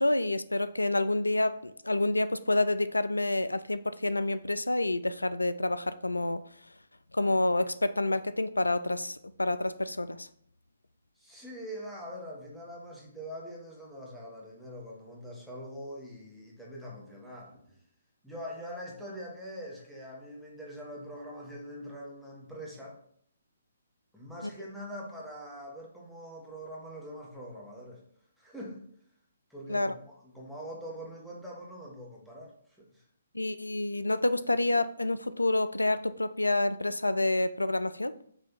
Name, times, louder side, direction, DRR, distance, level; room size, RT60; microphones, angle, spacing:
voice 1, 0.0-6.4 7.1-10.3 24.4-24.5 29.7-29.9 33.3-38.1, left 2 dB, 90° left, 14 dB, 0.3 m, -28 dB
voice 2, 11.2-17.8 18.2-23.0 24.1-28.0 28.4-28.8 29.5-32.5 32.8-33.0, equal, ahead, -4 dB, 1.6 m, -43 dB
6.0 x 3.2 x 5.5 m, 0.65 s
figure-of-eight pair, 135°, 0 cm